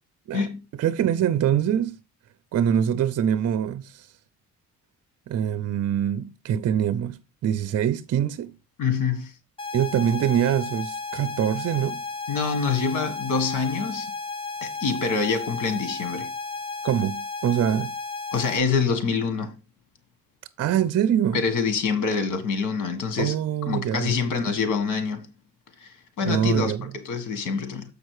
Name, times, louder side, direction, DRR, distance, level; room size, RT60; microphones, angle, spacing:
voice 1, 0.8-2.0 2.5-4.1 5.3-8.6 9.7-12.0 16.8-17.9 20.6-21.4 23.2-24.1 26.2-26.9, right 9 dB, 55° right, 0.6 m, -24 dB
voice 2, 8.8-9.3 12.3-14.1 14.6-16.3 18.3-19.5 21.3-23.3 23.7-25.3 25.8-27.8, left 5 dB, 85° left, 1.7 m, -26 dB
sound 1, 9.6-18.6, left 4 dB, 15° left, 2.0 m, -33 dB
7.3 x 5.1 x 4.7 m
cardioid pair, 90°, 30 cm